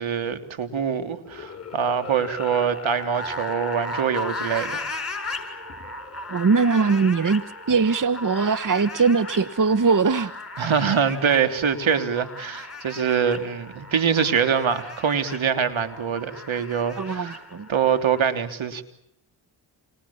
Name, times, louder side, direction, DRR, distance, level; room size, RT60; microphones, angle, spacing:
voice 1, 0.0-4.8 10.6-17.4 17.7-18.8, right 7 dB, 70° right, 3.4 m, -24 dB
sound 1, 1.2-18.3, left 2 dB, 30° left, 7.4 m, -37 dB
voice 2, 6.3-7.4 7.7-10.3 17.0-17.7, right 4 dB, 40° right, 1.4 m, -21 dB
29.0 x 28.0 x 7.3 m
cardioid pair, 50°, 49 cm